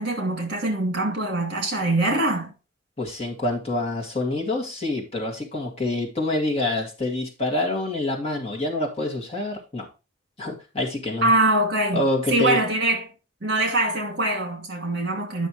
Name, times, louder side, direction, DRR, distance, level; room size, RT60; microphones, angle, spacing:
voice 1, 0.0-2.5 11.2-13.1 13.4-15.5, right 2 dB, 55° right, 2.4 m, -23 dB
voice 2, 3.0-9.9 10.4-11.3 11.9-12.6, left 2 dB, 30° left, 2.2 m, -26 dB
10.0 x 6.0 x 3.1 m
head